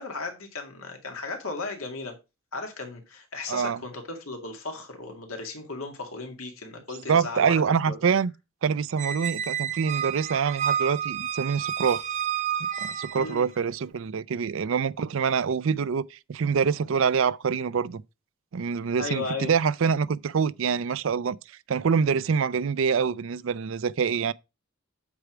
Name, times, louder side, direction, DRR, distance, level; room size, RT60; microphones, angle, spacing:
voice 1, 0.0-2.2 2.5-7.6 7.9-8.0 13.1-13.4 19.0-19.6, left 3 dB, 85° left, 2.2 m, -35 dB
voice 2, 3.5-3.8 7.1-8.3 8.6-12.0 12.8-18.0 18.5-21.4 21.7-24.3, right 6 dB, 65° right, 0.4 m, -25 dB
Squeak, 9.0-13.5, right 9 dB, 35° right, 0.8 m, -30 dB
8.2 x 4.7 x 4.9 m
head